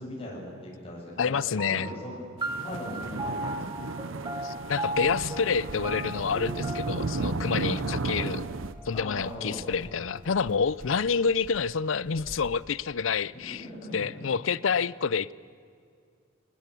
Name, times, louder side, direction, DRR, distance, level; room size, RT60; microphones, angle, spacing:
voice 1, 0.0-2.2 2.4-3.8 7.6-7.8 8.9-9.6 13.3-14.0, left 1 dB, 30° left, -4 dB, 7.3 m, -40 dB
voice 2, 1.2-1.9 4.4-8.5 8.8-13.7 13.9-15.3, left 6 dB, 75° left, 20 dB, 0.6 m, -28 dB
sound 1, 1.6-10.4, right 1 dB, 20° right, 1.6 m, -38 dB
sound 2, 2.4-8.7, right 3 dB, 80° right, 0.7 m, -34 dB
sound 3, 4.6-12.7, equal, 45° right, 2.2 m, -48 dB
22.5 x 20.0 x 8.5 m, 2.2 s
head